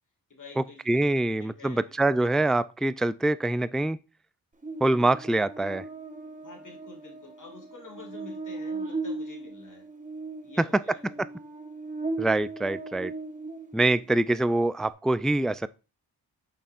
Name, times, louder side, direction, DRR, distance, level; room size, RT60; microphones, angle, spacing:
voice 1, 0.3-1.8 6.4-9.9 10.4-11.0, left 3 dB, 50° left, 3.0 m, -48 dB
voice 2, 0.9-4.0 4.8-5.8 12.2-13.1 13.7-15.7, right 2 dB, ahead, 0.3 m, -25 dB
Buzz, 4.6-14.1, right 3 dB, 20° right, 1.3 m, -38 dB
6.7 x 5.7 x 2.5 m
cardioid pair, 40°, 40 cm